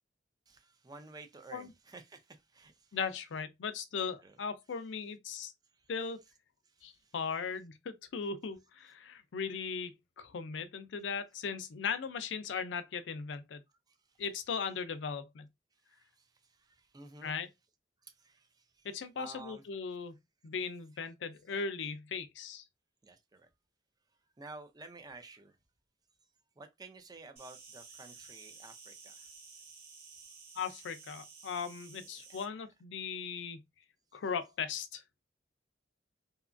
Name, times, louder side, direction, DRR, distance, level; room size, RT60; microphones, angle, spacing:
voice 1, 0.5-3.0 4.2-4.4 6.8-7.1 13.9-14.0 15.9-17.3 18.0-18.9 19.2-19.6 23.0-23.5 24.4-25.6 26.6-29.3 32.3-32.4, right 3 dB, 20° right, 0.5 m, -52 dB
voice 2, 2.9-5.5 5.9-6.2 6.8-13.6 14.2-15.5 17.2-17.5 18.8-20.2 20.4-22.6 30.6-33.6 34.1-35.0, left 5 dB, 80° left, 0.4 m, -38 dB
Insect, 27.4-32.4, right 5 dB, 60° right, 1.3 m, -53 dB
2.8 x 2.3 x 2.4 m
head